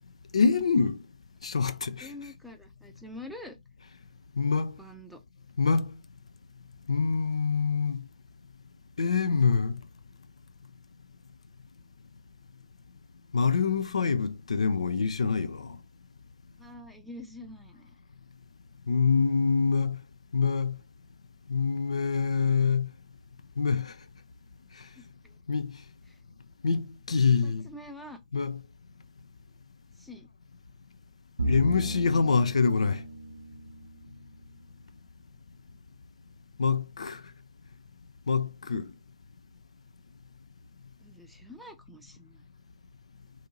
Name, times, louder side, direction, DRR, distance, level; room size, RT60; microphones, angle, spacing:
voice 1, 0.3-1.0 1.4-2.1 4.4-4.8 5.6-6.0 6.9-8.1 9.0-9.8 13.3-15.8 18.9-20.0 20.3-20.8 21.5-22.9 23.6-23.9 25.5-25.8 26.6-27.7 28.3-28.6 31.4-33.0 36.6-37.2 38.3-38.9, left 5 dB, 70° left, 0.3 m, -25 dB
voice 2, 2.0-3.6 4.8-5.2 16.6-18.0 24.9-25.1 26.1-26.2 27.4-28.2 30.0-30.3 41.0-42.4, left 1 dB, ahead, 0.5 m, -46 dB
Bowed string instrument, 31.4-34.9, right 1 dB, 80° right, 0.4 m, -35 dB
2.7 x 2.5 x 2.8 m
figure-of-eight pair, 115°, 4 cm